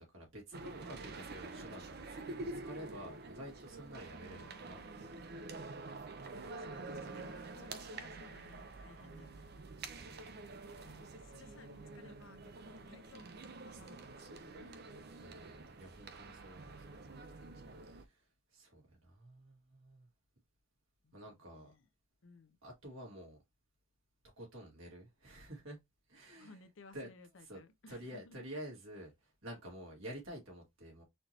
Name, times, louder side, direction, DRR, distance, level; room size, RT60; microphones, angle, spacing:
voice 1, 0.0-2.0 2.4-5.1 10.0-10.5 15.2-17.2 17.8-18.2 18.5-20.1 21.1-21.7 22.6-23.4 24.4-25.8 26.1-26.5 26.9-27.1 27.4-27.6 27.9-31.0, equal, 80° right, 1.9 m, -50 dB
sound 1, 0.5-18.1, right 3 dB, 50° right, 0.5 m, -48 dB
voice 2, 4.3-5.2 6.5-9.5 10.8-14.7 21.0-21.9 22.2-22.6 26.3-28.4, left 3 dB, 70° left, 0.6 m, -60 dB
4.3 x 3.1 x 2.8 m
head